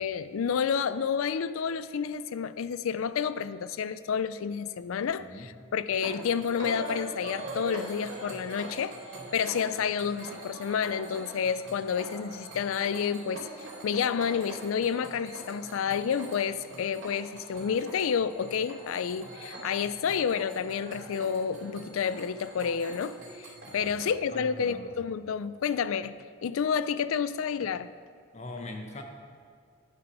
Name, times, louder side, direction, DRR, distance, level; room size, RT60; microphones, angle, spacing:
voice 1, 0.0-9.0 9.3-26.1 26.4-27.9, left 7 dB, 85° left, 15 dB, 0.4 m, -30 dB
voice 2, 5.2-5.5 23.6-23.9 24.3-24.9 28.3-29.0, left 2 dB, 35° left, 3 dB, 0.9 m, -42 dB
sound 1, 5.9-24.2, right 2 dB, 65° right, 2.5 m, -43 dB
9.6 x 7.1 x 5.5 m, 2.2 s
head